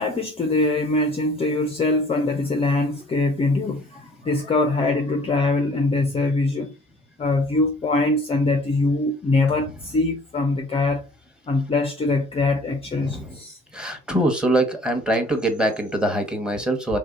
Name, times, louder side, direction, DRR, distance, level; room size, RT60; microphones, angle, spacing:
voice 1, 0.0-6.7 7.2-11.0 11.5-13.6, left 2 dB, 20° left, 0.6 m, -22 dB
voice 2, 13.0-13.4 13.7-17.0, right 1 dB, 5° right, 1.1 m, -23 dB
3.4 x 2.7 x 3.7 m
hypercardioid pair, 65°, 31 cm